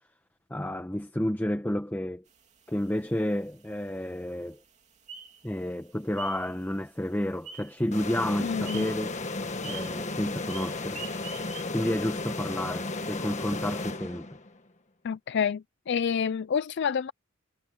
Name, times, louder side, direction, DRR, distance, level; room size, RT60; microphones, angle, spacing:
voice 1, 0.5-2.2 2.7-4.6 5.4-9.1 9.6-11.0 11.7-14.3, left 1 dB, 10° left, 1.0 m, -31 dB
sound 1, 2.3-11.6, right 6 dB, 35° right, 3.1 m, -48 dB
sound 2, 7.9-14.6, left 3 dB, 35° left, 1.6 m, -34 dB
voice 2, 8.4-8.9 15.0-17.1, left 7 dB, 55° left, 0.4 m, -28 dB
head